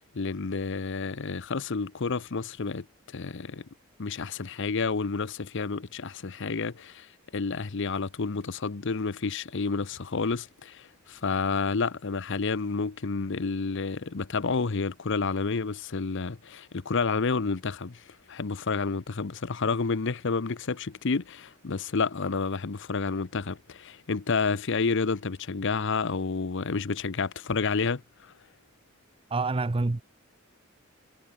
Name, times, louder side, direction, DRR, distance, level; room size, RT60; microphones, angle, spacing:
voice 1, 0.1-2.8 3.1-3.6 4.0-7.1 7.3-18.0 18.3-28.0, left 4 dB, 60° left, 0.8 m, -30 dB
voice 2, 29.3-30.0, right 3 dB, 25° right, 0.6 m, -27 dB
head